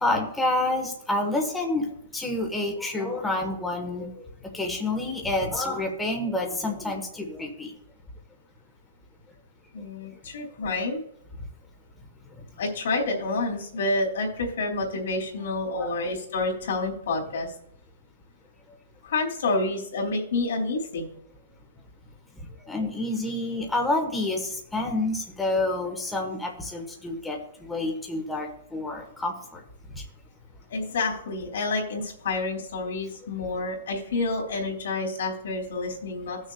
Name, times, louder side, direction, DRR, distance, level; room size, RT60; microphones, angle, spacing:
voice 1, 0.0-1.9 2.1-4.1 4.5-7.7 15.7-15.9 22.7-29.6, left 2 dB, 5° left, 1 dB, 1.2 m, -28 dB
voice 2, 9.7-11.0 12.6-17.5 19.0-21.1 30.7-36.4, left 3 dB, 65° left, 1 dB, 2.7 m, -28 dB
17.5 x 6.4 x 2.3 m, 0.72 s
hypercardioid pair, 175°, 0 cm